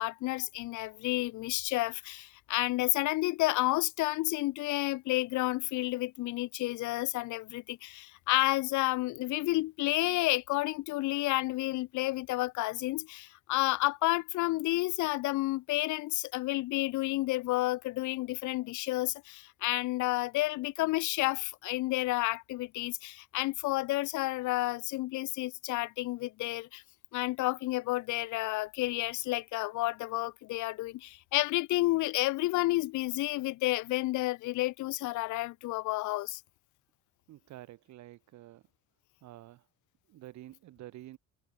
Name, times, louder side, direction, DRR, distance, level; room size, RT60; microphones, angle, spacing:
voice 1, 0.0-26.8 27.1-36.4, left 19 dB, 70° left, 1.0 m, -31 dB
voice 2, 37.3-38.6 39.2-39.7 40.1-41.2, right 15 dB, 65° right, 4.1 m, -49 dB
cardioid pair, 145°, 30 cm